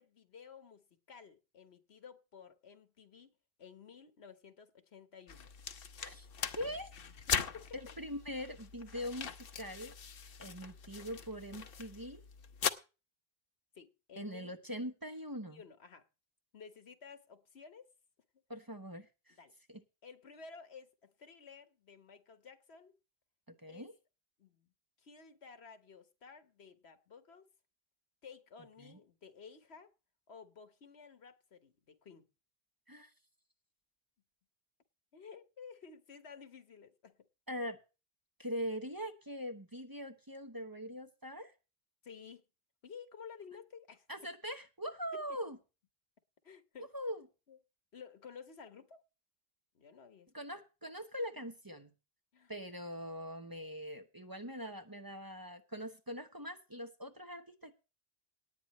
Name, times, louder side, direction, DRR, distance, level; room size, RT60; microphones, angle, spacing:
voice 1, 0.0-3.3 3.6-5.5 7.3-7.7 13.7-14.6 15.5-16.1 16.5-17.9 19.4-19.5 20.0-23.0 23.7-23.9 24.4-24.7 25.0-27.5 28.2-29.9 30.3-32.3 35.1-37.3 42.0-42.4 42.8-44.1 45.3-45.4 46.4-46.9 47.5-47.6 47.9-49.0 49.7-50.3 52.3-52.5, left 6 dB, 85° left, 1.6 m, -54 dB
sound 1, 5.3-12.7, left 7 dB, 65° left, 1.0 m, -40 dB
voice 2, 6.0-6.9 7.7-9.9 10.4-12.2 14.2-15.6 18.5-19.4 19.7-19.8 23.5-23.9 28.8-29.0 32.9-33.1 37.5-37.8 38.4-41.5 44.1-45.6 46.8-47.2 50.3-51.9 52.5-57.7, equal, 20° right, 0.9 m, -42 dB
18.5 x 9.1 x 3.1 m
omnidirectional pair, 1.1 m